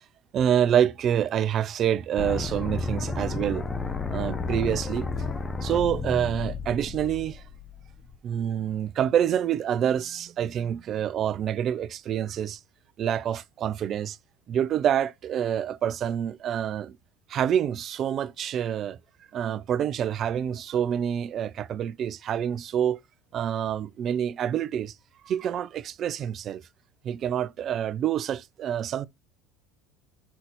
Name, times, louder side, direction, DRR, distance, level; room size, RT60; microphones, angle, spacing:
voice 1, 0.3-3.7 4.1-5.1 5.6-7.4 8.2-12.6 13.0-14.2 14.5-17.0 17.3-19.0 19.3-23.0 23.3-24.9 25.2-26.6 27.0-29.1, right 9 dB, 45° right, 0.7 m, -27 dB
sound 1, 2.2-8.2, left 4 dB, 25° left, 1.1 m, -32 dB
5.8 x 4.0 x 6.1 m
hypercardioid pair, 80°, 0 cm